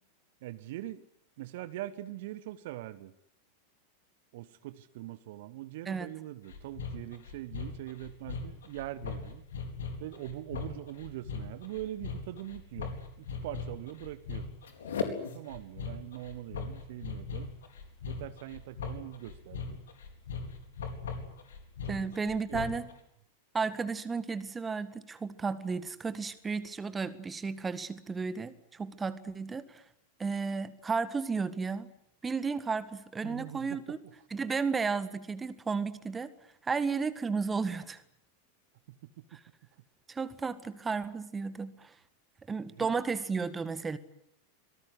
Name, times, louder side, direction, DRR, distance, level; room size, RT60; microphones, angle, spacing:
voice 1, 0.4-1.0 1.4-3.1 4.3-9.4 10.0-14.5 15.3-17.5 18.1-19.8 21.8-21.9 22.5-22.7 33.2-33.8 38.9-39.4 42.8-42.9, right 14 dB, 50° right, 14 dB, 1.1 m, -42 dB
sound 1, 6.5-22.9, left 5 dB, 65° left, 4.2 m, -39 dB
voice 2, 21.9-22.9 23.5-29.8 30.2-31.9 32.2-34.0 34.3-36.3 36.6-38.0 39.3-39.4 40.1-41.9 42.5-44.0, right 5 dB, 15° right, 14 dB, 1.7 m, -33 dB
26.0 x 19.0 x 9.9 m, 0.73 s
figure-of-eight pair, 90°, 0 cm